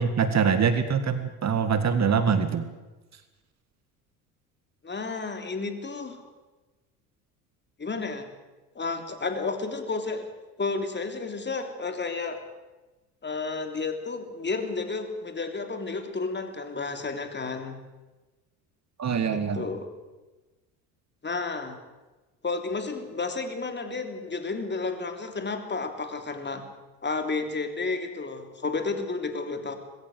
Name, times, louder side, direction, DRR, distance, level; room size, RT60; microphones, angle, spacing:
voice 1, 0.0-2.7 19.0-19.6, right 6 dB, 35° right, 10 dB, 2.0 m, -24 dB
voice 2, 4.8-6.2 7.8-8.3 8.7-10.3 10.6-12.4 13.2-17.8 19.3-19.9 21.2-21.8 22.4-26.6 27.0-29.8, left 4 dB, 25° left, 7 dB, 3.2 m, -31 dB
21.0 x 16.5 x 7.8 m, 1.2 s
hypercardioid pair, 70°, 44 cm